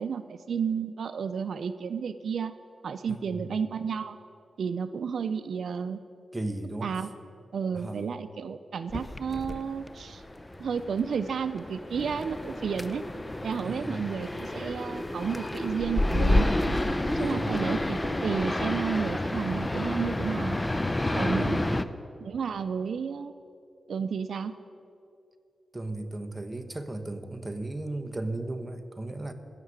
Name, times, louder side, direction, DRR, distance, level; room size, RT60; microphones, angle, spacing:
voice 1, 0.0-2.5 2.8-4.2 4.6-6.0 6.8-7.1 7.5-10.2 10.6-13.0 13.4-16.5 17.2-20.6 21.1-21.6 22.2-23.3 23.9-24.5, right 6 dB, 80° right, 11 dB, 0.5 m, -32 dB
voice 2, 3.1-3.4 6.3-7.0 7.7-8.0 13.6-14.0 17.2-17.6 21.3-21.8 25.7-29.3, right 2 dB, 20° right, 6 dB, 1.1 m, -36 dB
sound 1, 8.9-21.8, left 1 dB, 15° left, 0.6 m, -30 dB
15.5 x 6.6 x 9.5 m, 2.6 s
wide cardioid pair, 85°, 0 cm